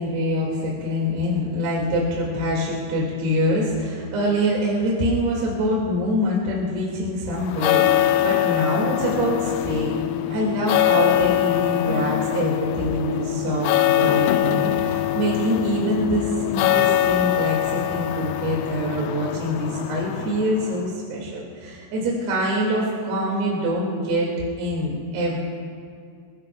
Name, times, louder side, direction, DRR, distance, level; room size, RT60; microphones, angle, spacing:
voice 1, 0.0-10.0 10.3-24.3 24.6-25.4, equal, 70° right, -4 dB, 4.2 m, -25 dB
sound 1, 7.4-20.9, left 14 dB, 80° left, 2.4 m, -23 dB
25.5 x 22.0 x 2.3 m, 2.4 s
omnidirectional pair, 4.9 m